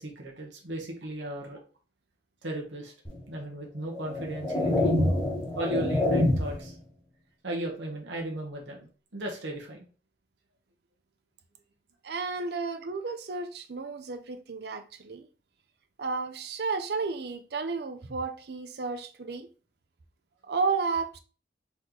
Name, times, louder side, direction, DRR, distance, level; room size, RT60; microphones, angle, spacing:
voice 1, 0.0-1.6 2.4-2.9 3.3-5.0 5.5-6.8 7.4-8.9 9.1-9.9, right 1 dB, 80° right, 1.2 m, -36 dB
sound 1, 3.1-3.2 3.9-6.7, left 1 dB, 20° left, 1.2 m, -26 dB
voice 2, 12.0-15.3 16.0-19.5 20.4-21.2, right 4 dB, 60° right, 0.5 m, -32 dB
4.2 x 3.1 x 3.8 m
head